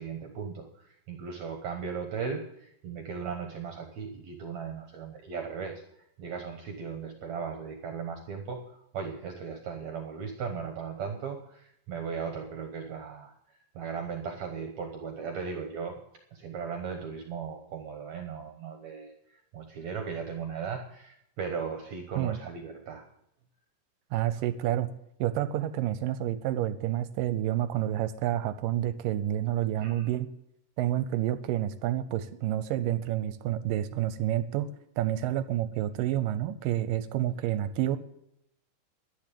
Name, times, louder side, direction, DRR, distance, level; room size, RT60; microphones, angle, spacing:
voice 1, 0.0-16.0 16.3-23.1 29.8-30.1, right 6 dB, 65° right, 4 dB, 2.2 m, -37 dB
voice 2, 24.1-24.9 25.2-30.3 30.8-38.0, right 12 dB, 80° right, 13 dB, 2.2 m, -29 dB
11.5 x 10.5 x 6.9 m, 0.77 s
omnidirectional pair, 4.0 m